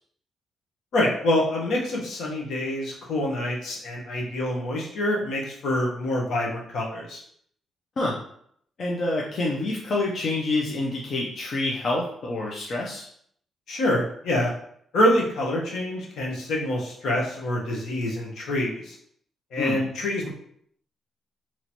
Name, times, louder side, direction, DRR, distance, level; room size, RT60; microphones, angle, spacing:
voice 1, 0.9-7.2 13.7-14.5 14.9-18.9 19.5-20.3, left 1 dB, 70° left, -2 dB, 1.1 m, -26 dB
voice 2, 8.8-13.1 19.6-19.8, left 2 dB, 45° left, -3 dB, 0.6 m, -27 dB
3.0 x 2.9 x 4.3 m, 0.66 s
cardioid pair, 140°, 0 cm